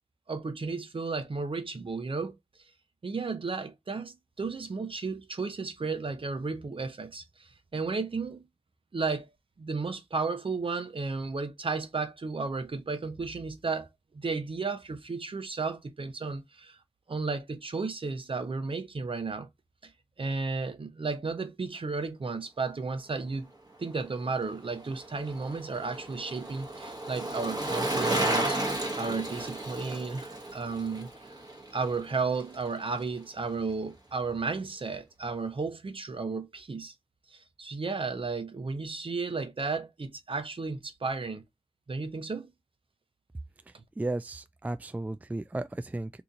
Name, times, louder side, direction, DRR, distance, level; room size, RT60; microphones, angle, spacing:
voice 1, 0.3-2.4 3.0-8.5 8.9-9.3 9.6-13.9 14.1-16.8 17.1-19.5 19.8-19.9 20.2-23.5 23.8-28.6 28.9-31.3 31.7-36.9 37.3-41.4 41.9-42.5 43.7-43.8, right 4 dB, 60° right, 0.8 m, -33 dB
Bicycle, 24.3-32.7 33.0-33.1, right 1 dB, 40° right, 1.1 m, -33 dB
voice 2, 44.0-46.1, right 2 dB, 15° right, 0.3 m, -34 dB
2.9 x 2.6 x 3.7 m
cardioid pair, 45°, 11 cm